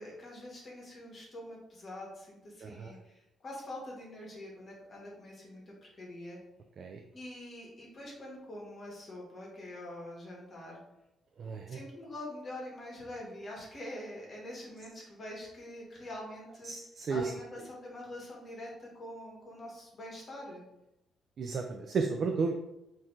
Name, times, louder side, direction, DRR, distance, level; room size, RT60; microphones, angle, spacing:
voice 1, 0.0-6.4 7.1-10.8 11.7-16.7 17.1-20.6, left 1 dB, 40° left, -3 dB, 1.2 m, -45 dB
voice 2, 2.6-2.9 6.8-7.0 11.4-11.8 16.7-17.3 21.4-22.5, right 4 dB, 55° right, 4 dB, 0.3 m, -33 dB
3.8 x 2.8 x 3.1 m, 0.92 s
cardioid pair, 90°, 0 cm